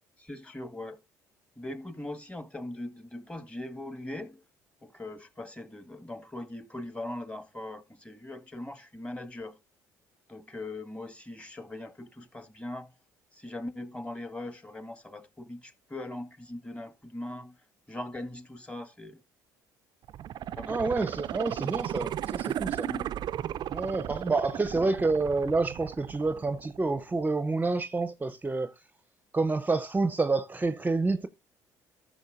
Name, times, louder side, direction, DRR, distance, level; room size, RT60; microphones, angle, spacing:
voice 1, 0.2-1.0 1.6-4.4 4.8-9.6 10.3-12.9 13.3-17.5 17.9-19.2 20.6-20.8 22.8-23.1 24.7-24.9, left 1 dB, 15° left, 1.6 m, -40 dB
sound 1, 20.0-27.0 27.4-27.5, right 11 dB, 55° right, 0.4 m, -35 dB
voice 2, 20.7-22.9 23.7-28.7 29.3-31.3, right 3 dB, 20° right, 0.7 m, -28 dB
14.5 x 6.3 x 2.6 m
hypercardioid pair, 65°, 9 cm